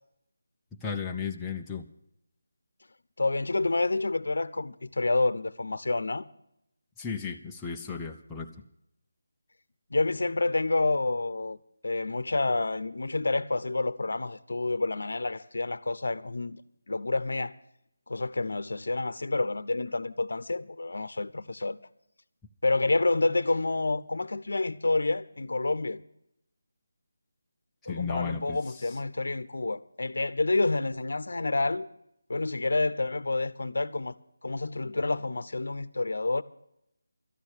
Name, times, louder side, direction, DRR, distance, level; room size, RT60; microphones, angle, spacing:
voice 1, 0.8-1.9 7.0-8.5 27.9-29.0, left 5 dB, 5° left, 0.5 m, -34 dB
voice 2, 3.2-6.2 9.9-11.6 11.8-16.6 16.9-17.5 18.1-21.8 22.6-26.0 27.9-31.9 32.3-34.1 34.4-36.4, left 2 dB, 75° left, 0.7 m, -28 dB
13.0 x 9.9 x 7.2 m
figure-of-eight pair, 170°, 0 cm